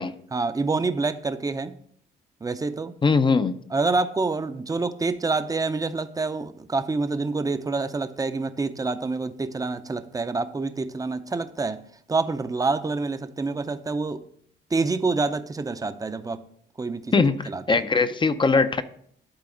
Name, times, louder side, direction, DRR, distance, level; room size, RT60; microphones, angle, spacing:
voice 1, 0.3-1.7 2.4-2.9 3.7-11.8 12.1-14.2 14.7-16.4 16.8-17.1 17.5-17.8, right 3 dB, 20° right, 10 dB, 0.6 m, -27 dB
voice 2, 3.0-3.5 17.1-18.8, left 4 dB, 25° left, 12 dB, 0.5 m, -21 dB
12.0 x 4.0 x 3.8 m, 0.63 s
cardioid pair, 90°, 20 cm